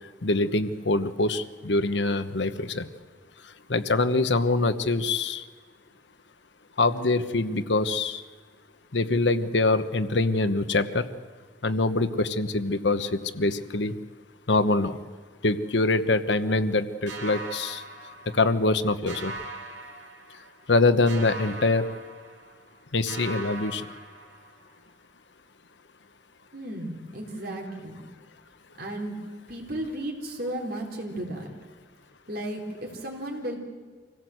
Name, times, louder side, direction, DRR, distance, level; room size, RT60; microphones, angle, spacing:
voice 1, 0.2-2.9 3.7-5.4 6.8-8.2 8.9-11.0 11.6-13.9 14.5-15.0 15.4-17.8 18.3-19.3 20.7-21.9 22.9-23.9, left 2 dB, 75° left, 11 dB, 1.1 m, -24 dB
sound 1, 17.1-18.8 19.1-20.7 21.1-22.8 23.1-24.8, right 2 dB, 90° right, 2.5 m, -40 dB
voice 2, 26.5-28.0 28.8-29.2 29.5-31.5 32.3-33.6, right 1 dB, 55° right, 0 dB, 4.0 m, -34 dB
25.5 x 17.0 x 7.9 m, 1.5 s
head